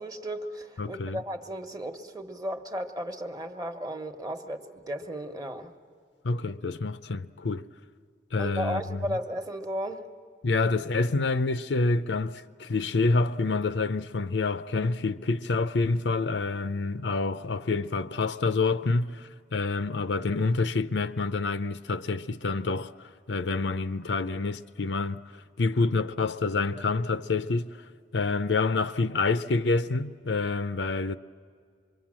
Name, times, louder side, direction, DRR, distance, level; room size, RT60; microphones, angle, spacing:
voice 1, 0.0-5.7 8.4-10.1, equal, 20° right, 1.1 m, -35 dB
voice 2, 0.8-1.2 6.2-7.7 8.3-9.2 10.4-25.2 25.6-27.7 28.1-31.2, left 3 dB, 90° left, 0.6 m, -27 dB
26.5 x 22.5 x 7.5 m
head